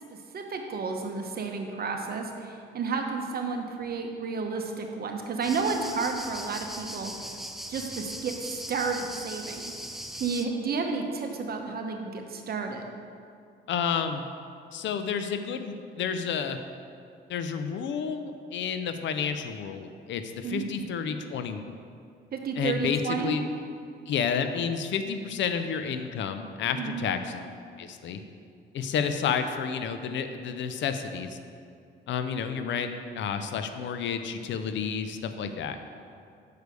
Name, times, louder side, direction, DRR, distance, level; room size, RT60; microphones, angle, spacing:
voice 1, 0.1-7.1 7.7-9.7 10.1-12.9 20.4-20.7 22.3-23.4 26.7-27.1, right 4 dB, 50° right, 4 dB, 1.0 m, -31 dB
sound 1, 5.4-10.5, equal, ahead, 0.5 m, -39 dB
voice 2, 13.7-14.2 14.7-16.6 17.3-21.6 22.6-23.4 24.1-27.4 27.8-28.2 28.7-31.4 32.1-32.9 33.1-35.8, left 6 dB, 70° left, 8 dB, 0.6 m, -30 dB
6.7 x 4.7 x 6.6 m, 2.3 s
cardioid pair, 90°, 20 cm